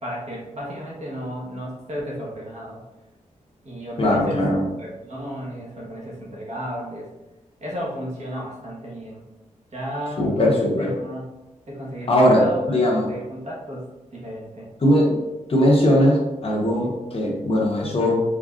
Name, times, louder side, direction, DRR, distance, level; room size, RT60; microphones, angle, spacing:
voice 1, 0.0-2.8 3.6-4.4 4.8-7.1 7.6-9.2 9.7-11.3 11.7-13.9 14.1-14.7, equal, 55° right, -4 dB, 1.4 m, -33 dB
voice 2, 4.0-4.7 10.2-10.9 12.1-12.4 12.7-13.1 14.8-15.2 15.5-18.2, left 1 dB, 45° left, -3 dB, 1.1 m, -19 dB
4.9 x 3.7 x 2.5 m, 1.0 s
wide cardioid pair, 135°, 13 cm